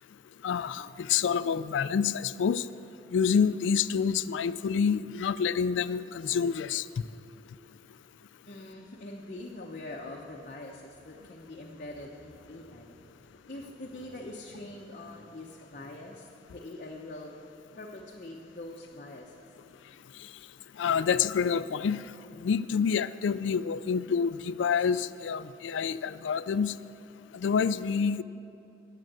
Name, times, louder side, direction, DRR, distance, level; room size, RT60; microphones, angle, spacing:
voice 1, 0.4-2.6 3.1-6.8 20.8-22.0 22.4-26.8 27.3-28.2, left 6 dB, 90° left, 15 dB, 0.3 m, -27 dB
voice 2, 8.5-17.4 17.7-19.4, left 1 dB, 45° left, -1 dB, 0.8 m, -44 dB
10.5 x 7.6 x 7.5 m, 2.8 s
head